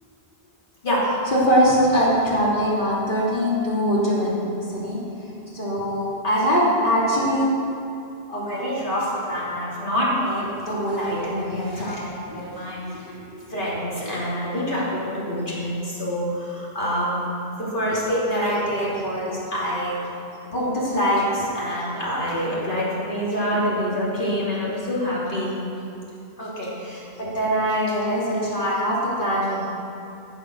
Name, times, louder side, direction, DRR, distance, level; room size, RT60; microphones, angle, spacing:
voice 1, 0.8-4.4 4.7-5.0 5.5-7.5 8.3-17.2 17.6-20.0 20.4-25.5 26.4-29.7, equal, 50° left, -7 dB, 3.3 m, -24 dB
14.0 x 7.6 x 6.3 m, 2.7 s
omnidirectional pair, 1.1 m